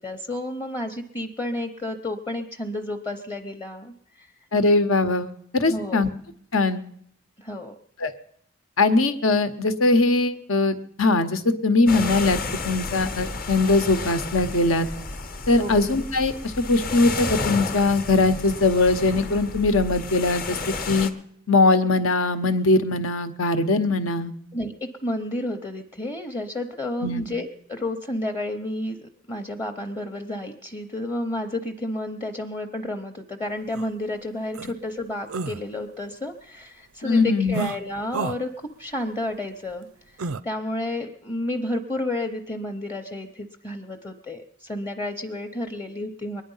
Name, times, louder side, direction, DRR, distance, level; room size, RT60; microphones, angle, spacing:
voice 1, 0.0-4.3 5.7-6.0 7.4-7.7 15.5-15.8 24.5-39.9 40.1-46.4, left 1 dB, 20° left, 3 dB, 0.8 m, -31 dB
voice 2, 4.5-6.1 6.5-6.8 8.0-8.1 8.8-12.4 12.6-14.9 15.5-20.6 20.9-21.1 21.5-24.3 27.0-27.3 37.0-37.7, left 3 dB, 75° left, 10 dB, 1.1 m, -21 dB
sound 1, 11.9-21.1, left 3 dB, 45° left, 1.0 m, -32 dB
sound 2, 33.7-33.9 34.5-34.7 35.3-35.6 37.5-37.8 38.1-38.4 40.2-40.4, right 4 dB, 85° right, 0.5 m, -30 dB
22.0 x 10.0 x 5.6 m, 0.68 s
head